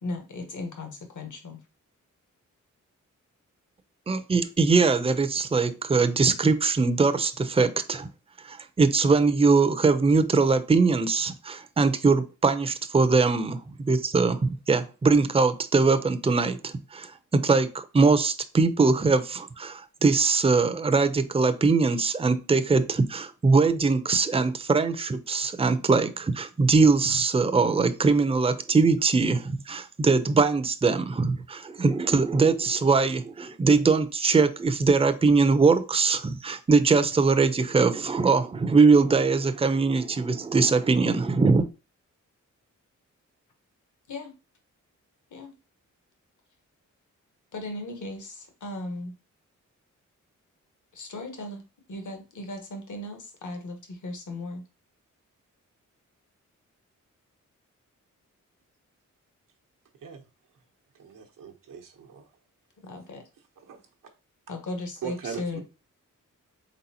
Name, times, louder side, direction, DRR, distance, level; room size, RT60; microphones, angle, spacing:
voice 1, 0.0-1.6 44.1-44.3 45.3-45.5 47.5-49.1 50.9-51.6 51.9-54.6 62.8-63.2 64.5-65.6, left 2 dB, 65° left, 1.3 m, -37 dB
voice 2, 4.1-8.1 8.4-41.7, right 4 dB, 20° right, 0.5 m, -22 dB
voice 3, 61.0-62.2 63.7-63.8 65.0-65.6, right 7 dB, 85° right, 1.0 m, -39 dB
4.0 x 3.7 x 2.8 m
cardioid pair, 55°, 32 cm